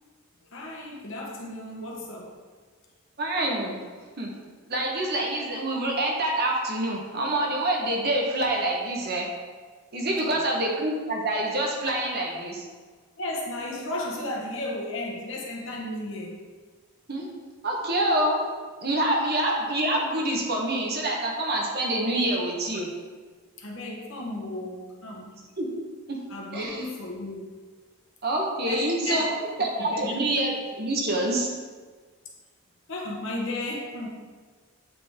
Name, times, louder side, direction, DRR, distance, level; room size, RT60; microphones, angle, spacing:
voice 1, 0.5-2.3 13.2-16.3 23.6-25.3 26.3-27.5 28.6-29.2 29.8-30.1 32.9-34.1, left 1 dB, 55° left, -2 dB, 1.1 m, -34 dB
voice 2, 3.2-3.8 4.2-4.3 4.7-9.3 9.9-12.6 17.1-17.3 17.6-18.4 18.8-22.9 25.6-25.7 26.1-26.2 26.5-26.8 28.2-29.3 29.6-31.5, right 1 dB, 45° right, -1 dB, 1.0 m, -26 dB
8.2 x 3.8 x 3.6 m, 1.5 s
head